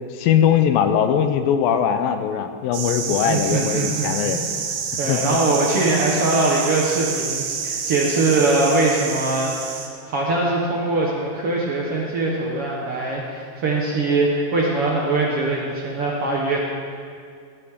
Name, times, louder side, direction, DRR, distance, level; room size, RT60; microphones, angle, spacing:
voice 1, 0.1-4.4 5.0-5.4, left 8 dB, 80° left, 8 dB, 2.4 m, -20 dB
sound 1, 2.7-9.9, right 6 dB, 90° right, 3.0 m, -28 dB
voice 2, 3.0-4.7 5.0-9.8 10.1-16.6, right 2 dB, 60° right, -3 dB, 1.5 m, -22 dB
18.0 x 12.0 x 3.6 m, 2.2 s
omnidirectional pair, 4.1 m